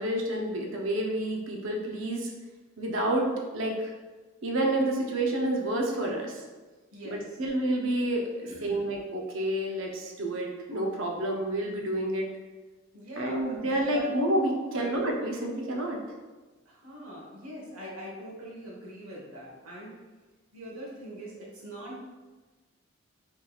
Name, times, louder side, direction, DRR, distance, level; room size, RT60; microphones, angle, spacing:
voice 1, 0.0-2.3 2.8-3.9 4.4-6.4 7.0-12.3 13.2-16.0, right 1 dB, 65° right, 0 dB, 0.6 m, -29 dB
voice 2, 6.9-7.3 8.4-8.9 12.9-14.1 14.7-15.0 16.6-19.9 20.5-22.0, right 1 dB, 85° right, -4 dB, 1.1 m, -42 dB
3.5 x 2.9 x 2.3 m, 1.3 s
head